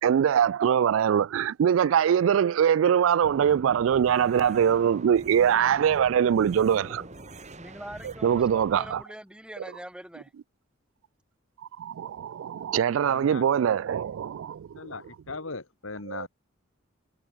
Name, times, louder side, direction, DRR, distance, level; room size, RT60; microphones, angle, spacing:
voice 1, 0.0-7.0 8.0-9.0 9.6-9.7 11.8-14.7 16.1-16.3, right 8 dB, 75° right, 0.3 m, -23 dB
sound 1, 3.2-9.0, right 1 dB, 35° right, 4.0 m, -44 dB
voice 2, 7.6-10.3, right 1 dB, 5° right, 4.5 m, -43 dB
voice 3, 13.0-13.5 14.7-16.3, left 3 dB, 85° left, 2.1 m, -38 dB
head